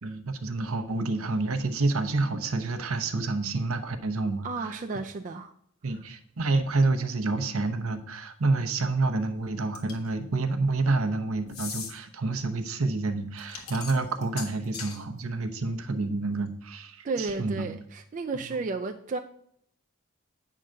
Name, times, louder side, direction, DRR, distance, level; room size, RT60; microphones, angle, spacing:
voice 1, 0.0-4.7 5.8-17.7 18.4-18.5, right 3 dB, 75° right, 0.8 m, -28 dB
voice 2, 4.4-5.5 5.9-6.0 17.0-19.2, right 3 dB, 35° right, 0.3 m, -33 dB
sound 1, 9.7-10.1 11.5-11.9 13.4-15.0, left 6 dB, 70° left, 1.6 m, -38 dB
8.8 x 3.8 x 6.4 m
head